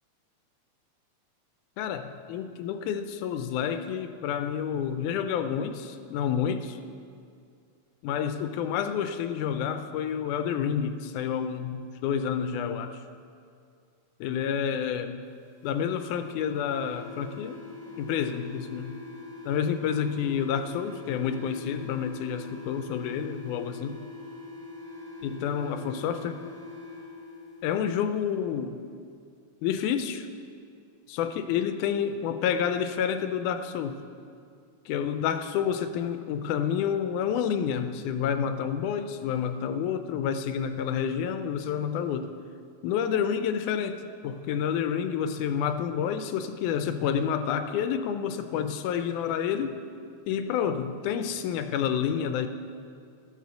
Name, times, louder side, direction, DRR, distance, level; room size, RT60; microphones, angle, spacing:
voice 1, 1.8-6.8 8.0-13.0 14.2-15.2 15.6-17.6 18.0-19.0 19.5-24.0 25.2-26.4 27.6-28.8 29.6-30.3 31.1-34.0 34.9-42.3 42.8-49.8 50.3-52.5, left 8 dB, 90° left, 8 dB, 2.1 m, -29 dB
sound 1, 15.6-27.6, left 3 dB, 55° right, 3.3 m, -43 dB
13.5 x 6.5 x 6.9 m, 2.3 s
omnidirectional pair, 3.5 m